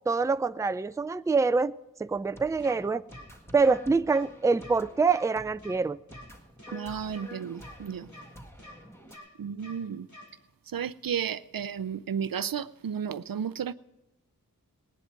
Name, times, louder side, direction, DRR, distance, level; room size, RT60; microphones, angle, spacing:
voice 1, 0.1-1.7 2.0-3.0 3.5-6.0, right 4 dB, 10° right, 0.4 m, -25 dB
sound 1, 2.1-9.2, left 1 dB, 5° left, 1.7 m, -49 dB
sound 2, 2.6-2.7 3.1-3.2 3.6-3.7 4.1-4.2 4.6-4.7 5.1-5.2 5.6-5.7 6.1-6.2 6.6-6.7 7.1-7.2 7.6-7.7 8.1-8.2 8.6-8.7 9.1-9.2 9.6-9.7 10.1-10.2, left 1 dB, 55° left, 5.1 m, -47 dB
voice 2, 6.7-8.1 9.4-10.1 10.7-13.7, right 8 dB, 80° right, 0.5 m, -33 dB
19.0 x 10.5 x 4.6 m
wide cardioid pair, 60°, 35 cm